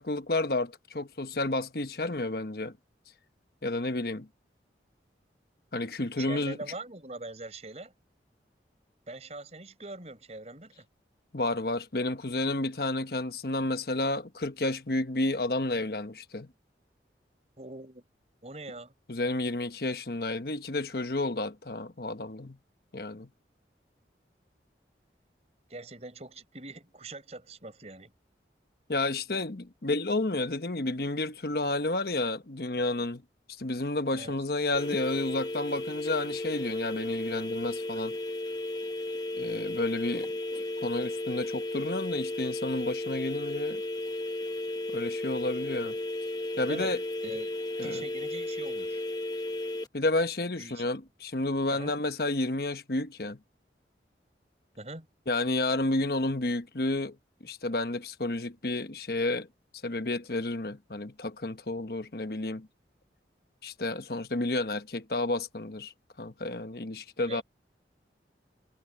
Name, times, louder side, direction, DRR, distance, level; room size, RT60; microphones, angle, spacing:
voice 1, 0.0-2.7 3.6-4.3 5.7-6.6 11.3-16.5 19.1-22.6 22.9-23.3 28.9-33.2 33.6-38.2 39.4-40.3 40.8-43.8 44.9-46.0 46.6-47.0 47.8-48.0 49.9-53.4 55.3-57.2 57.4-59.5 59.8-62.7 63.6-65.9 66.2-67.4, left 2 dB, 55° left, 1.2 m, -31 dB
voice 2, 6.2-7.9 9.1-10.9 17.6-18.0 18.4-18.9 25.7-28.1 34.1-34.4 46.7-46.9 47.2-47.5 47.8-49.0 50.6-50.9 51.7-51.9 54.8-55.1 67.3-67.4, right 2 dB, 35° right, 4.8 m, -42 dB
sound 1, 34.7-49.9, left 1 dB, 20° left, 1.2 m, -34 dB
head